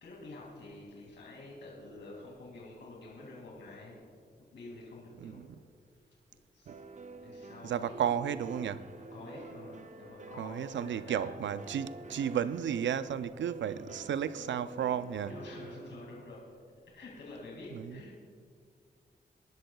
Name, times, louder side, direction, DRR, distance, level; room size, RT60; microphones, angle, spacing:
voice 1, 0.0-4.1 4.5-5.5 6.5-6.8 7.2-8.1 9.1-11.2 15.3-16.4 16.9-18.2, left 2 dB, 85° left, 2.5 m, -48 dB
sound 1, 6.7-16.6, right 3 dB, 40° right, 0.6 m, -48 dB
voice 2, 7.6-8.8 10.4-15.3 17.7-18.0, right 8 dB, 85° right, 0.5 m, -33 dB
23.5 x 11.5 x 2.3 m
cardioid pair, 50°, 19 cm